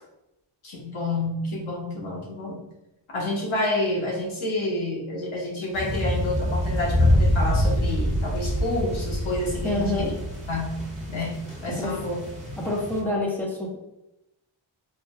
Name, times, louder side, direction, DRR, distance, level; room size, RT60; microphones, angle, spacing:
voice 1, 0.6-2.6 3.1-10.1 10.5-12.2, left 2 dB, 80° left, -2 dB, 1.1 m, -29 dB
sound 1, 5.7-13.0, equal, 15° right, 1.3 m, -26 dB
voice 2, 9.6-10.2 11.8-12.0 12.6-13.8, left 2 dB, 5° left, -3 dB, 0.8 m, -27 dB
4.6 x 2.5 x 2.2 m, 0.91 s
wide cardioid pair, 90°, 48 cm